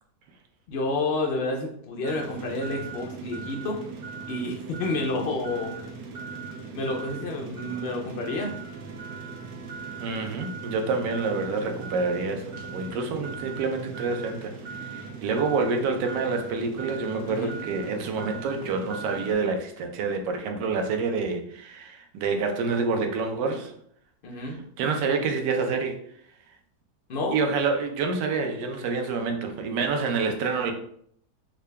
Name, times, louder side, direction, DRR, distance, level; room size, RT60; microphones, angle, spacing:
voice 1, 0.7-3.8 4.3-5.7 6.7-8.6 17.3-17.6 24.2-24.6 27.1-27.4, left 2 dB, 80° left, 0 dB, 0.5 m, -29 dB
sound 1, 2.0-19.3, right 5 dB, 70° right, 1.1 m, -39 dB
voice 2, 10.0-14.5 14.8-23.7 24.8-26.0 27.3-30.7, right 4 dB, 85° right, 5 dB, 1.2 m, -27 dB
3.7 x 2.2 x 3.3 m, 0.65 s
omnidirectional pair, 1.8 m